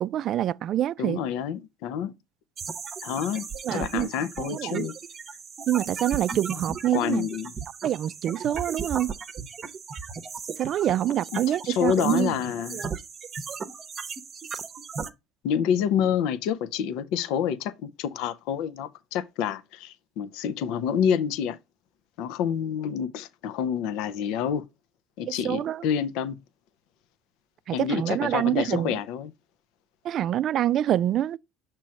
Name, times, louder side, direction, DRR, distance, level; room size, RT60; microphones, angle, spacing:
voice 1, 0.0-1.2 3.6-4.1 4.4-4.9 5.7-7.3 7.8-9.1 10.6-12.3 12.7-12.9 25.3-25.8 27.7-29.0 30.0-31.4, right 12 dB, 50° right, 0.3 m, -26 dB
voice 2, 1.0-2.1 3.0-4.9 6.9-7.5 11.3-12.8 15.4-21.6 22.2-24.7 25.2-26.4 27.7-29.3, left 8 dB, 75° left, 0.5 m, -28 dB
sound 1, 2.6-15.1, right 6 dB, 35° right, 0.8 m, -37 dB
6.2 x 3.0 x 5.6 m
supercardioid pair, 100°, 0 cm